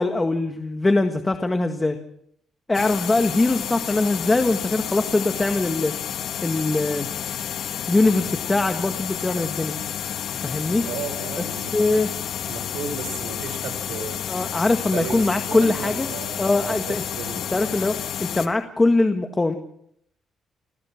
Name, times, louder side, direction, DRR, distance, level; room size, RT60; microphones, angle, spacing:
voice 1, 0.0-2.0 2.7-5.9 6.4-7.1 7.9-9.7 10.3-10.8 11.7-12.1 14.3-16.1 16.4-17.0 17.5-19.6, left 2 dB, 20° left, 6 dB, 1.8 m, -22 dB
sound 1, 2.7-18.5, left 9 dB, 70° left, 1.6 m, -30 dB
voice 2, 10.8-12.1 12.4-14.2 14.9-17.4, right 6 dB, 85° right, 5 dB, 4.6 m, -35 dB
30.0 x 14.5 x 6.0 m, 0.71 s
cardioid pair, 90°, 0 cm